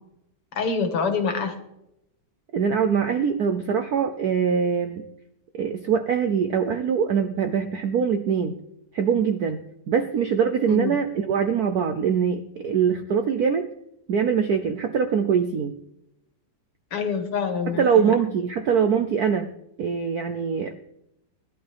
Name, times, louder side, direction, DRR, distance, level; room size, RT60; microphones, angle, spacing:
voice 1, 0.6-1.6 10.7-11.0 16.9-18.1, left 5 dB, 85° left, 6 dB, 2.7 m, -26 dB
voice 2, 2.5-5.0 5.5-8.6 8.9-9.6 9.9-13.7 14.1-15.8 17.7-19.5 19.8-20.7, right 7 dB, 65° right, 8 dB, 0.9 m, -23 dB
19.5 x 11.5 x 3.5 m, 0.84 s
omnidirectional pair, 2.4 m